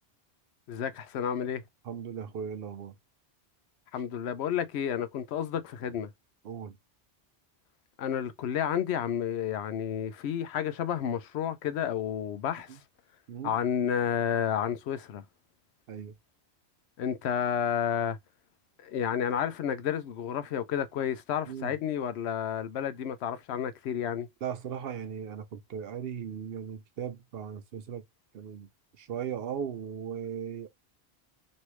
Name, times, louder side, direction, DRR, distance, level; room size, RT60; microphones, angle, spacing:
voice 1, 0.7-1.6 3.9-6.1 8.0-12.8 13.4-15.2 17.0-18.2 18.8-24.3, left 8 dB, 80° left, 0.8 m, -31 dB
voice 2, 1.8-2.9 5.9-6.0 6.4-6.8 12.7-12.8 13.3-13.6 15.9-16.1 21.5-21.7 24.4-28.0 28.3-28.7 29.0-30.7, right 8 dB, 70° right, 0.8 m, -37 dB
3.1 x 2.7 x 3.0 m
omnidirectional pair, 1.1 m